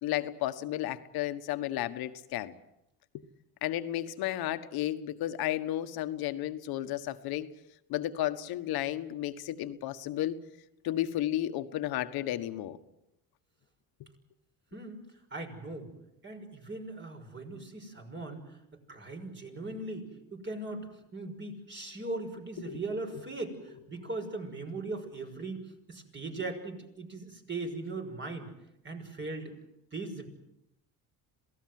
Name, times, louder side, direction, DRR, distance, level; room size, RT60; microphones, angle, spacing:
voice 1, 0.0-2.5 3.6-7.5 7.9-10.4 10.8-12.8 22.7-22.8 23.1-23.2, left 13 dB, 75° left, 10 dB, 1.6 m, -33 dB
voice 2, 14.7-15.0 15.3-15.9 16.2-28.5 28.8-29.5 29.9-30.3, right 2 dB, 30° right, 4 dB, 6.1 m, -39 dB
27.0 x 18.0 x 7.8 m, 0.85 s
cardioid pair, 95°, 37 cm